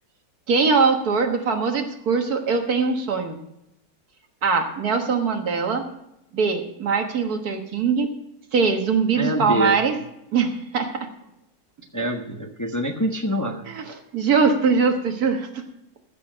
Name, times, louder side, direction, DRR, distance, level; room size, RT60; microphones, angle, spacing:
voice 1, 0.5-3.4 4.4-5.8 6.3-8.1 8.5-10.0 10.3-11.1 13.7-15.6, right 5 dB, 70° right, 5 dB, 1.9 m, -22 dB
voice 2, 9.2-9.8 11.9-13.6, equal, 15° left, 4 dB, 0.7 m, -25 dB
14.5 x 6.4 x 6.2 m, 0.85 s
omnidirectional pair, 1.7 m